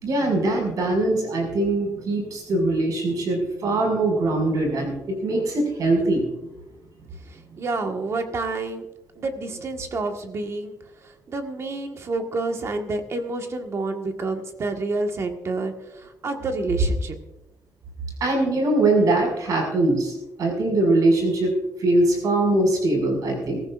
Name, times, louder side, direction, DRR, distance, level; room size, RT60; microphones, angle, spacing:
voice 1, 0.0-6.2 18.2-20.1 20.4-21.5 21.8-23.6, right 2 dB, 75° right, 1 dB, 6.2 m, -22 dB
voice 2, 7.6-8.9 9.2-10.8 11.3-17.1, right 3 dB, 50° right, 4 dB, 1.6 m, -28 dB
22.5 x 14.5 x 2.6 m, 0.96 s
wide cardioid pair, 155°, 6 cm